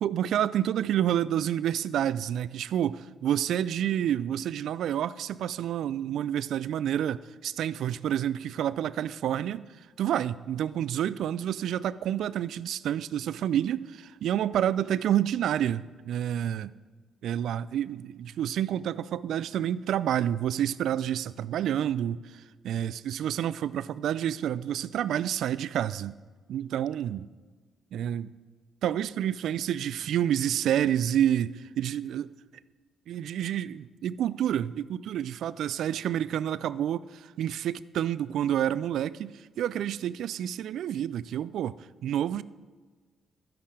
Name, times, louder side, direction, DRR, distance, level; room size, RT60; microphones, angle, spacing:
voice 1, 0.0-9.7 10.0-16.7 17.2-26.1 26.5-27.3 27.9-28.3 28.8-32.3 33.1-41.8 42.0-42.4, right 10 dB, 70° right, 0.3 m, -29 dB
12.0 x 10.5 x 4.9 m
hypercardioid pair, 40°, 0 cm